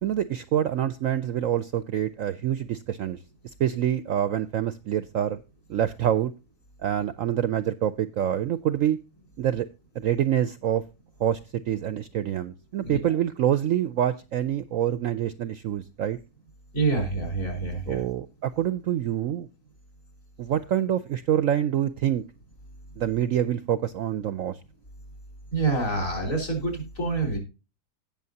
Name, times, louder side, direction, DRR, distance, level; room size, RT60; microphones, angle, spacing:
voice 1, 0.0-3.2 3.6-5.4 5.7-6.3 6.8-9.0 9.4-9.7 10.0-10.8 11.2-16.2 17.9-19.5 20.4-22.2 23.0-24.6, right 10 dB, 65° right, 14 dB, 0.8 m, -26 dB
voice 2, 12.8-13.1 16.7-18.0 25.5-27.4, right 3 dB, 50° left, 2 dB, 4.6 m, -27 dB
17.5 x 6.4 x 2.8 m, 0.29 s
omnidirectional pair, 1.8 m